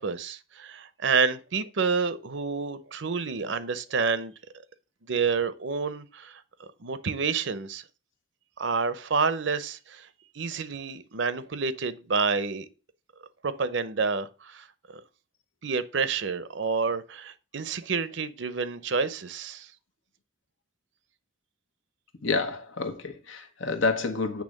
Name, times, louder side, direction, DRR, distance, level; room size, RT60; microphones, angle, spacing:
voice 1, 0.0-4.3 5.1-7.8 8.6-10.1 10.3-12.7 13.4-15.0 15.6-19.7, right 5 dB, 65° right, 0.7 m, -29 dB
voice 2, 22.2-24.4, left 3 dB, 80° left, 1.2 m, -28 dB
8.4 x 3.4 x 6.4 m
head